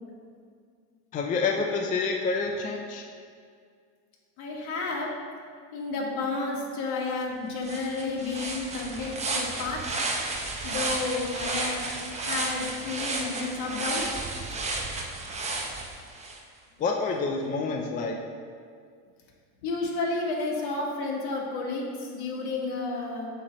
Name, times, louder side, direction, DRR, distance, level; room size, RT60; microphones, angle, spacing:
voice 1, 1.1-3.0 16.8-18.2, left 4 dB, 20° left, 2 dB, 0.3 m, -28 dB
voice 2, 4.4-5.1 5.7-9.8 10.6-11.8 12.1-14.1 19.6-23.3, left 3 dB, 55° left, -2 dB, 1.8 m, -31 dB
sound 1, 7.2-7.3 7.6-16.4, right 2 dB, 15° right, 0.7 m, -32 dB
8.2 x 3.1 x 6.0 m, 2.1 s
supercardioid pair, 120°, 45 cm